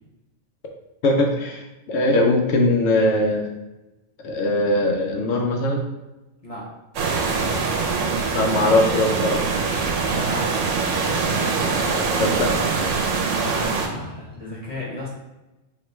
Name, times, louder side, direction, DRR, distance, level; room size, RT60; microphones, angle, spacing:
voice 1, 1.0-1.6 1.9-3.5 4.2-5.8 8.3-9.4 11.8-12.5, left 1 dB, 90° left, 2 dB, 1.0 m, -20 dB
sound 1, 6.9-13.9, right 4 dB, 85° right, 1.0 m, -23 dB
voice 2, 10.0-10.6 13.3-15.1, equal, 35° left, -5 dB, 0.8 m, -33 dB
3.0 x 2.9 x 4.4 m, 1.0 s
omnidirectional pair, 1.2 m